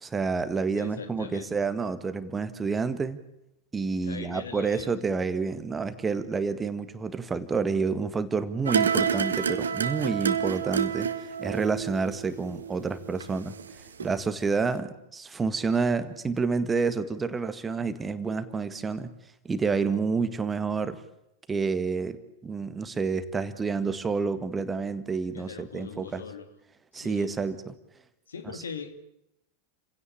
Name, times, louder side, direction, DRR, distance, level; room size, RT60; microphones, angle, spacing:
voice 1, 0.0-3.2 3.7-11.1 11.4-13.6 14.0-19.1 19.5-21.0 21.5-22.2 22.4-26.2 26.9-27.7, right 4 dB, 15° right, 11 dB, 1.8 m, -29 dB
voice 2, 0.7-1.5 4.0-4.9 25.3-26.5 26.9-27.4 28.3-29.0, left 5 dB, 70° left, 9 dB, 2.6 m, -41 dB
sound 1, 8.7-13.7 14.0-14.1, right 7 dB, 70° right, 1.6 m, -29 dB
30.0 x 17.0 x 8.6 m, 0.84 s
figure-of-eight pair, 90°, 0 cm